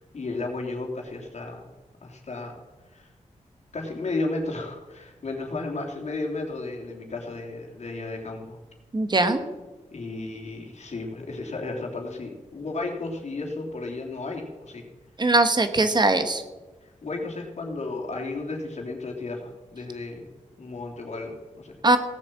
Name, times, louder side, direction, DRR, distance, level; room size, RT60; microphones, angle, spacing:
voice 1, 0.1-1.7 2.0-2.5 2.9-3.1 3.7-8.6 9.9-14.9 16.8-20.3 20.6-21.8, left 2 dB, 65° left, 0 dB, 3.1 m, -33 dB
voice 2, 8.9-9.4 15.2-16.4 21.8-22.0, right 2 dB, 35° right, 9 dB, 1.3 m, -20 dB
17.5 x 7.7 x 7.6 m, 1.2 s
wide cardioid pair, 105°, 13 cm